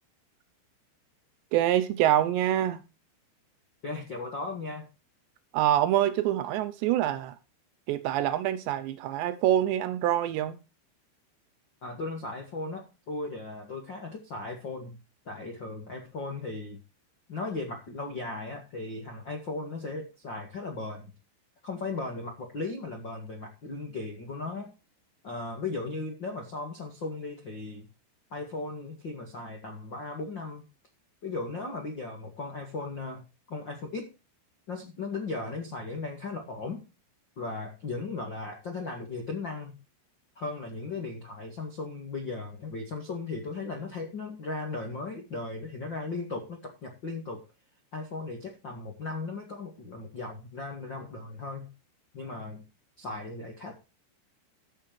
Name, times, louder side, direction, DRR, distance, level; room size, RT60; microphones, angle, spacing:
voice 1, 1.5-2.8 5.5-7.4 7.9-10.6, right 12 dB, 80° right, 2.7 m, -25 dB
voice 2, 3.8-4.9 11.8-15.0 15.2-16.8 17.3-21.1 21.6-24.7 25.2-27.9 28.3-30.6 31.2-34.1 34.7-36.8 37.4-39.7 40.3-47.4 47.9-51.7 52.1-52.6 53.0-53.7, left 3 dB, 60° left, 1.2 m, -37 dB
14.5 x 6.9 x 4.8 m
omnidirectional pair, 5.8 m